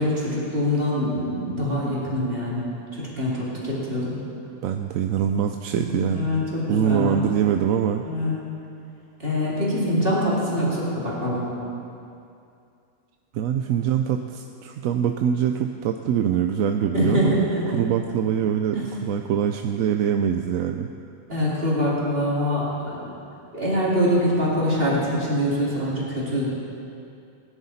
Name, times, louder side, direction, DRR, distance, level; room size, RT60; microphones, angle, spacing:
voice 1, 0.0-2.7 2.9-4.2 5.7-7.2 8.0-8.3 9.2-11.5 16.9-17.8 18.7-18.8 21.3-23.1 23.5-26.5, equal, 45° right, -7 dB, 3.1 m, -24 dB
voice 2, 4.6-6.3 6.7-8.0 13.3-17.4 17.7-20.9, right 8 dB, 75° right, 5 dB, 1.0 m, -24 dB
19.5 x 10.5 x 4.2 m, 2.6 s
omnidirectional pair, 1.4 m